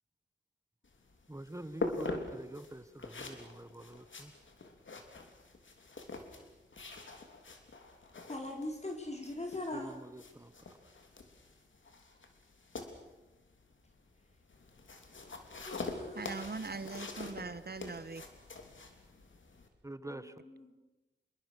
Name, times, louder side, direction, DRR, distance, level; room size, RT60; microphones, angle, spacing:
sound 1, 0.8-19.7, left 3 dB, 85° left, 3.3 m, -45 dB
voice 1, 1.3-4.3 9.7-10.5 19.8-20.4, right 1 dB, 15° right, 12 dB, 1.0 m, -46 dB
voice 2, 8.3-9.9 15.6-16.5 20.0-20.8, left 2 dB, 35° left, 2 dB, 4.3 m, -41 dB
voice 3, 16.2-18.3, right 4 dB, 55° right, 14 dB, 1.1 m, -41 dB
27.5 x 22.5 x 6.8 m, 1.0 s
wide cardioid pair, 90°, 19 cm